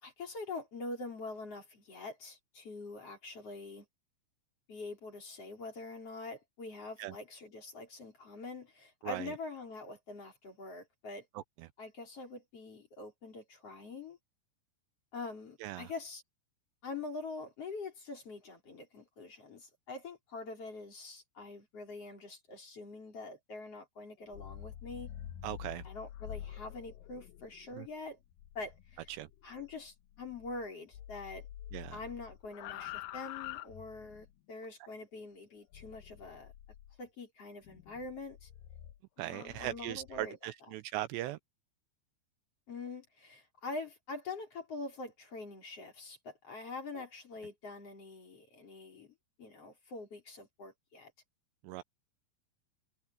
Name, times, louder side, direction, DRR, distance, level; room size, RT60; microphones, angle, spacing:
voice 1, 0.0-3.8 4.7-11.2 11.8-14.2 15.1-16.2 16.8-25.1 25.8-28.2 28.5-29.0 29.4-31.5 31.9-36.5 37.0-38.5 39.2-40.4 42.7-49.1 49.4-51.1, left 3 dB, 35° left, 5.0 m, -44 dB
voice 2, 9.0-9.3 11.3-11.7 15.6-15.9 25.4-25.9 27.7-27.9 29.1-29.3 31.7-32.0 39.2-41.4 46.9-47.0 51.6-51.8, right 15 dB, 85° right, 2.7 m, -39 dB
sound 1, 24.2-30.7 30.9-34.3 35.7-37.0 37.6-40.3, left 12 dB, 80° left, 2.0 m, -48 dB
omnidirectional pair, 5.3 m